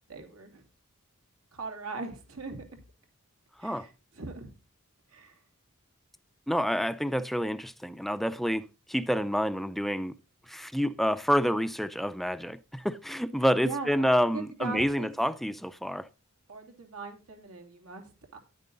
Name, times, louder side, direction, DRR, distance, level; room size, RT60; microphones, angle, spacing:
voice 1, 0.1-0.6 1.5-2.6 3.6-4.5 5.1-5.4 13.6-15.1 16.5-18.4, right 3 dB, 80° right, 2.9 m, -40 dB
voice 2, 6.5-10.2 10.5-16.1, equal, ahead, 0.5 m, -28 dB
11.0 x 9.2 x 3.9 m
head